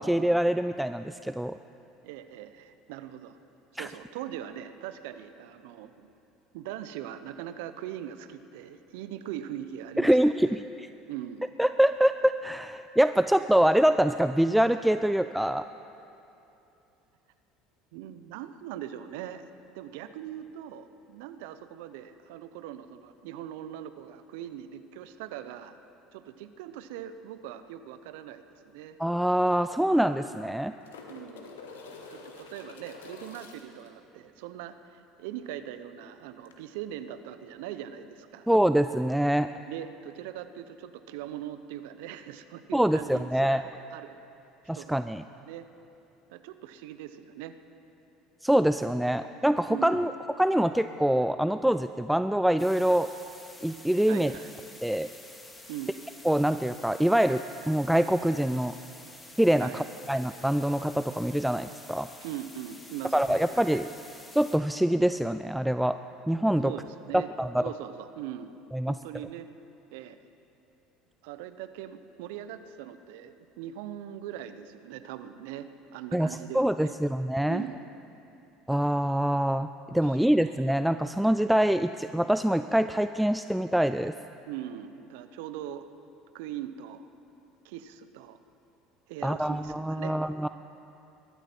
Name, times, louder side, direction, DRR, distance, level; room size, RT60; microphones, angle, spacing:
voice 1, 0.0-1.6 3.8-3.9 10.0-10.9 11.6-15.7 29.0-30.7 38.5-39.5 42.7-43.6 44.7-45.2 48.4-50.1 50.4-53.1 53.6-54.3 54.8-55.1 56.2-58.7 59.4-62.1 63.1-63.9 64.3-66.0 66.3-66.7 67.1-67.6 68.7-69.0 76.1-76.3 76.5-77.6 78.7-84.1 89.2-90.5, right 1 dB, 5° right, 11 dB, 0.4 m, -25 dB
voice 2, 2.0-3.4 3.7-6.1 6.5-10.6 11.1-11.5 17.9-25.8 26.1-29.0 31.1-31.5 32.1-38.5 39.7-43.6 43.9-44.2 44.7-45.0 45.3-45.7 46.3-47.6 49.7-50.1 54.1-54.5 55.7-56.0 59.6-59.8 62.2-63.8 66.6-67.3 67.6-68.6 68.9-69.5 69.9-70.2 71.2-76.9 77.5-77.9 80.0-80.3 84.5-85.8 86.3-87.0 87.6-88.4 89.1-90.2, right 11 dB, 70° right, 11 dB, 0.7 m, -41 dB
sound 1, 28.7-28.8 29.0-29.1 30.2-33.9 36.5-36.6, left 4 dB, 85° left, 1.5 m, -47 dB
sound 2, 52.6-64.6, left 1 dB, 15° left, 2.4 m, -49 dB
21.5 x 13.0 x 4.5 m, 2.8 s
hypercardioid pair, 70°, 0 cm